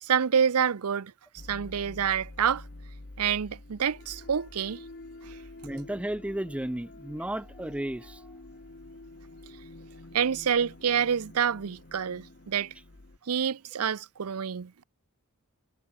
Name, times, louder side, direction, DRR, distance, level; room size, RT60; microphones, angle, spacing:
voice 1, 0.0-1.1 1.5-2.7 3.2-4.8 5.2-5.4 10.1-12.7 13.3-14.7, right 7 dB, 85° right, 0.6 m, -27 dB
sound 1, 1.4-13.2, left 2 dB, 50° left, 1.2 m, -48 dB
voice 2, 5.6-8.3, right 1 dB, 5° right, 0.3 m, -34 dB
head